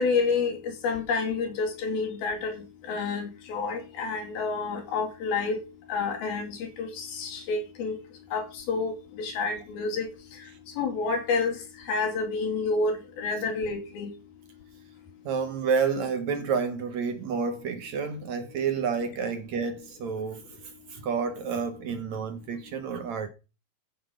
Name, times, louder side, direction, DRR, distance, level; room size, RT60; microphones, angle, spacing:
voice 1, 0.0-5.6 5.9-8.0 8.3-10.1 10.8-11.6 11.9-14.1, left 4 dB, 85° left, 4.3 m, -29 dB
voice 2, 15.2-20.4 20.9-23.3, right 6 dB, 65° right, 2.1 m, -29 dB
14.5 x 7.1 x 5.1 m
omnidirectional pair, 4.2 m